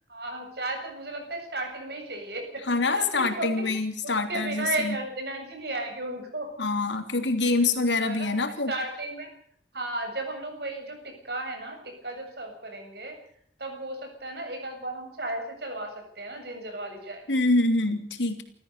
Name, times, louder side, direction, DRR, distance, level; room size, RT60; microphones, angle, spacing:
voice 1, 0.1-3.5 4.0-6.5 8.0-8.4 8.7-9.3 9.7-13.2 13.6-17.3, right 2 dB, 60° right, 4 dB, 7.8 m, -34 dB
voice 2, 2.7-5.0 6.6-8.7 17.3-18.4, left 3 dB, 80° left, 6 dB, 3.3 m, -25 dB
28.5 x 14.5 x 6.8 m, 0.64 s
head